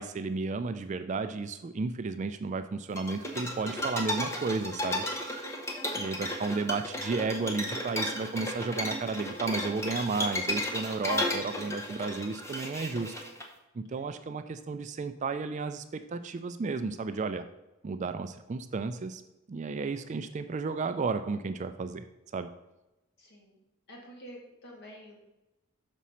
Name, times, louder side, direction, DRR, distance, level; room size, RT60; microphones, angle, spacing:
voice 1, 0.0-5.0 5.9-13.1 13.7-17.4 17.8-19.2 19.5-22.0 22.3-22.5, right 4 dB, 35° right, 10 dB, 0.3 m, -33 dB
sound 1, 3.0-13.4, left 1 dB, 15° left, 0.9 m, -34 dB
voice 2, 23.2-23.6 23.9-25.2, equal, 55° left, -1 dB, 1.8 m, -49 dB
6.2 x 4.1 x 5.6 m, 0.98 s
head